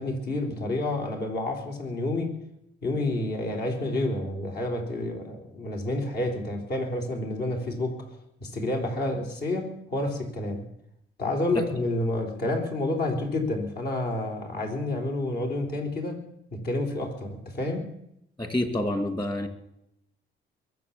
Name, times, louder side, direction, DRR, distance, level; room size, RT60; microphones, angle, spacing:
voice 1, 0.0-2.4 2.8-8.0 8.4-10.6 11.2-16.2 16.5-17.9, left 2 dB, 55° left, 3 dB, 4.1 m, -29 dB
voice 2, 18.4-19.5, left 1 dB, 20° left, 7 dB, 2.8 m, -27 dB
22.0 x 7.7 x 7.2 m, 0.77 s
cardioid pair, 90°, 20 cm